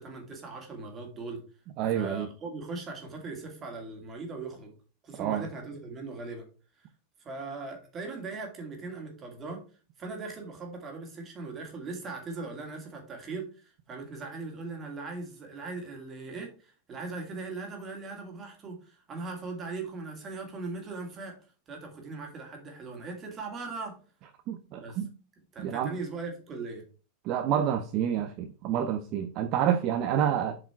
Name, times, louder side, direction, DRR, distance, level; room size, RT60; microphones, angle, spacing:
voice 1, 0.0-1.4 1.9-4.7 5.0-6.5 6.8-6.9 7.2-9.6 10.0-21.4 21.7-24.0 24.8-25.0 25.5-26.8, right 3 dB, 20° right, 2.4 m, -39 dB
voice 2, 1.8-2.3 5.1-5.4 24.5-25.1 25.6-25.9 27.3-30.6, right 9 dB, 40° right, 0.7 m, -28 dB
7.4 x 5.0 x 4.5 m
supercardioid pair, 160°, 0 cm